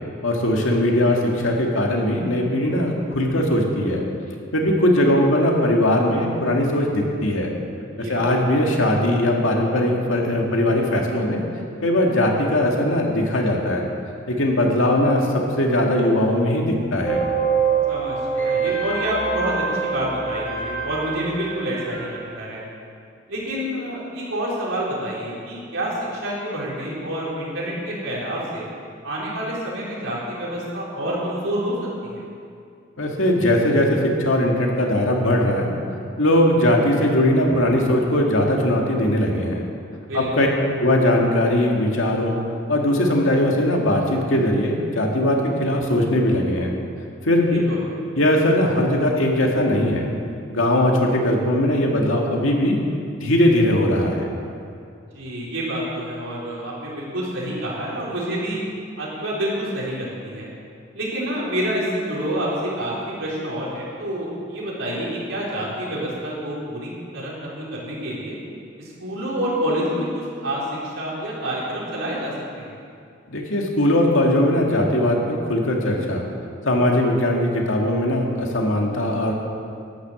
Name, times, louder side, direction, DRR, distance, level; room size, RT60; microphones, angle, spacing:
voice 1, 0.2-4.0 4.5-7.5 8.0-11.4 11.8-13.9 14.3-17.2 33.0-35.7 36.2-39.6 40.1-40.5 40.8-42.4 42.7-46.7 47.2-47.6 48.2-50.0 50.5-52.8 53.2-54.3 73.3-76.2 76.6-79.3, left 1 dB, 75° left, 0 dB, 2.1 m, -20 dB
voice 2, 8.0-8.3 17.9-22.6 23.3-28.6 29.0-31.8 32.0-32.2 40.0-40.5 47.5-48.0 55.1-58.6 59.0-60.5 60.9-68.4 68.8-72.7, equal, 75° right, -6 dB, 4.3 m, -28 dB
Sinister Gothic Piano Flourish, 17.0-22.1, right 6 dB, 10° left, 3.8 m, -25 dB
11.5 x 9.8 x 7.6 m, 2.4 s
head